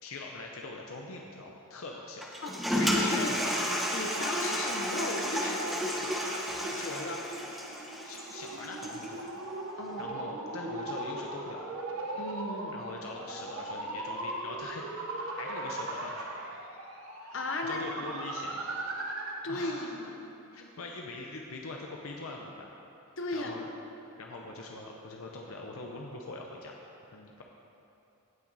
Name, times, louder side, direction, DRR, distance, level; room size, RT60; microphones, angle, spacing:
voice 1, 0.0-2.3 2.7-3.5 8.0-9.3 10.0-11.6 12.7-14.8 15.4-16.3 17.6-18.8 19.5-20.0 20.5-22.7 23.3-23.7 24.2-26.7 27.1-27.4, left 3 dB, 80° left, 0 dB, 0.7 m, -43 dB
Toilet flush, 2.2-9.1, equal, ahead, 0.9 m, -32 dB
voice 2, 2.4-3.3 3.9-6.2 6.6-7.3 9.7-10.1 12.2-12.8 17.3-18.0 19.4-20.1 23.2-23.7, left 2 dB, 65° left, 3 dB, 1.0 m, -36 dB
sound 1, 6.9-19.5, right 2 dB, 80° right, 1.0 m, -39 dB
16.5 x 5.9 x 4.1 m, 2.8 s
head